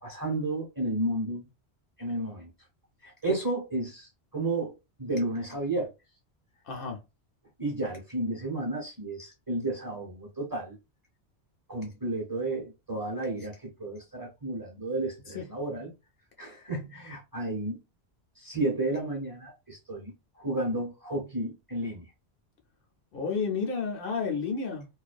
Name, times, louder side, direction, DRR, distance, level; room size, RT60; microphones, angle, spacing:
voice 1, 0.0-1.5 2.0-2.5 3.0-4.7 5.0-5.9 7.6-10.8 11.7-15.9 16.4-17.8 18.4-22.0, right 2 dB, 20° right, 0.7 m, -32 dB
voice 2, 6.6-7.0 15.3-15.5 23.1-24.9, left 5 dB, 65° left, 0.7 m, -31 dB
2.3 x 2.2 x 2.4 m
omnidirectional pair, 1.1 m